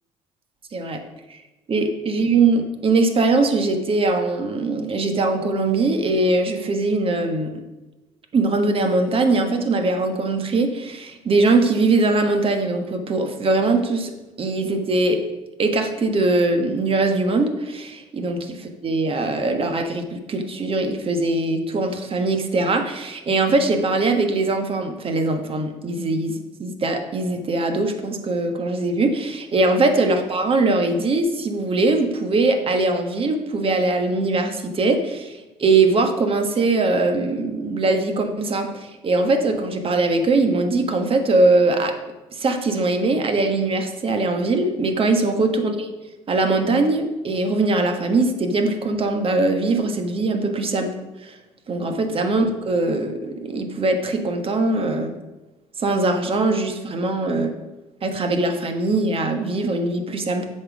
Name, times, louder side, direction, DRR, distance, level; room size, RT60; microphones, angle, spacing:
voice 1, 1.7-7.5 8.3-14.1 14.4-15.2 15.6-41.9 42.3-45.9 46.3-50.9 51.2-51.3 51.7-55.1 55.8-57.5 58.0-60.5, right 3 dB, 45° right, 5 dB, 1.3 m, -21 dB
7.6 x 4.4 x 6.2 m, 1.1 s
supercardioid pair, 65°, 13 cm